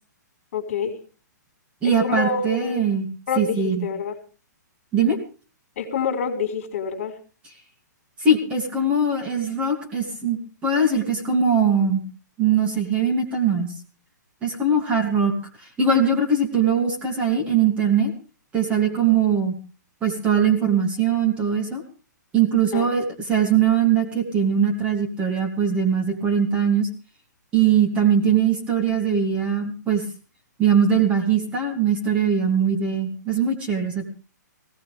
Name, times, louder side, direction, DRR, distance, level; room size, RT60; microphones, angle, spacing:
voice 1, 0.5-0.9 1.8-2.8 3.3-4.1 5.8-7.1 22.7-22.9, left 5 dB, 45° left, 3 dB, 4.3 m, -27 dB
voice 2, 1.8-3.1 3.4-3.9 4.9-5.2 8.2-12.0 12.4-13.7 14.4-18.1 18.5-19.5 20.0-21.8 22.3-26.9 27.5-30.0 30.6-34.1, right 5 dB, 10° right, 2 dB, 2.6 m, -21 dB
19.5 x 17.5 x 3.4 m, 0.37 s
hypercardioid pair, 175°, 10 cm